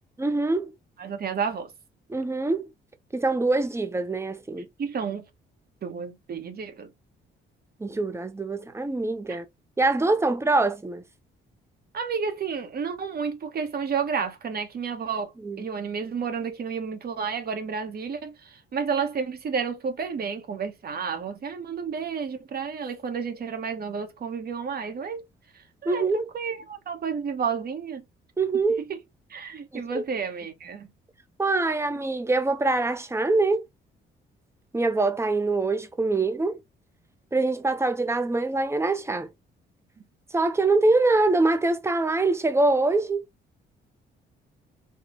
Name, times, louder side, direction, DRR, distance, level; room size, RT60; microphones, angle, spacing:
voice 1, 0.2-0.7 2.1-2.7 3.1-4.7 7.8-9.4 9.8-11.0 15.4-15.6 25.9-26.3 28.4-28.8 29.7-30.0 31.4-33.6 34.7-36.6 37.3-39.3 40.3-43.2, right 3 dB, 15° right, 0.8 m, -24 dB
voice 2, 1.0-1.7 4.8-5.3 5.8-6.9 9.3-9.4 11.9-15.3 15.6-25.3 25.5-28.0 28.9-29.0 29.3-30.9, right 6 dB, 50° right, 1.1 m, -31 dB
4.4 x 2.3 x 2.9 m
cardioid pair, 90°, 20 cm